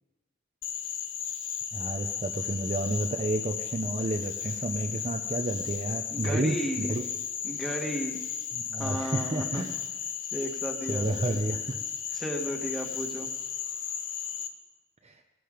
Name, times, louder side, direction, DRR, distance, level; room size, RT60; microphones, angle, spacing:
Frog, 0.6-14.5, left 8 dB, 65° left, 1.2 m, -35 dB
voice 1, 1.7-7.0 8.5-9.8 10.9-11.8 12.1-12.2 15.0-15.2, right 1 dB, 30° right, 3 dB, 0.7 m, -31 dB
voice 2, 6.1-6.9 7.4-8.2 8.8-9.7 10.3-11.4 12.1-13.3, equal, ahead, 2 dB, 1.8 m, -34 dB
19.0 x 14.0 x 5.1 m, 1.2 s
head